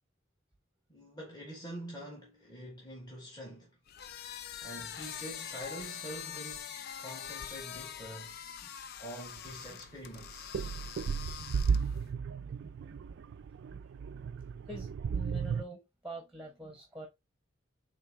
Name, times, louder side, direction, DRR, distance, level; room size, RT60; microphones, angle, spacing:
voice 1, 0.9-3.7 4.6-8.4 9.0-10.5, equal, 20° left, 1.2 m, -46 dB
sound 1, 3.9-12.1, left 9 dB, 50° left, 0.4 m, -44 dB
voice 2, 8.2-8.8 9.7-9.8 10.6-17.1, right 2 dB, 5° right, 0.9 m, -49 dB
sound 2, 9.4-9.5 10.0-15.6, right 6 dB, 55° right, 0.3 m, -34 dB
4.5 x 3.3 x 3.2 m
head